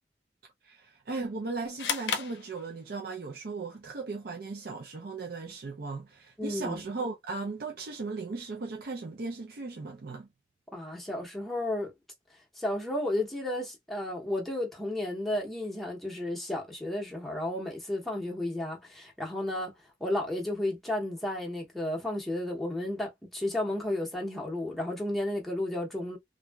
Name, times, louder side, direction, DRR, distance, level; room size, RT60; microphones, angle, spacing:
voice 1, 0.6-10.3, right 3 dB, 60° right, 0.5 m, -37 dB
sound 1, 1.8-3.2, left 7 dB, 80° left, 0.5 m, -34 dB
voice 2, 6.4-6.8 10.7-11.9 12.6-19.7 20.0-26.2, left 1 dB, ahead, 0.7 m, -33 dB
2.9 x 2.6 x 2.2 m
head